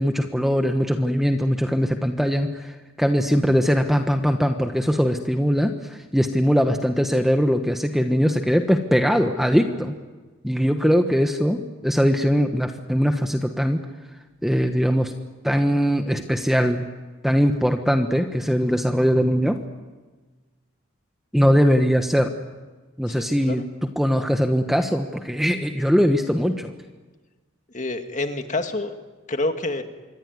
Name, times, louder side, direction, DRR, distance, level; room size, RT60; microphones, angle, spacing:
voice 1, 0.0-9.9 10.4-13.8 14.4-15.1 15.4-16.9 17.2-19.6 21.3-22.3 23.0-26.7, equal, ahead, 5 dB, 1.2 m, -21 dB
voice 2, 23.1-23.6 27.7-28.9 29.3-29.8, left 2 dB, 35° left, 6 dB, 2.0 m, -27 dB
26.5 x 22.5 x 9.6 m, 1.3 s
head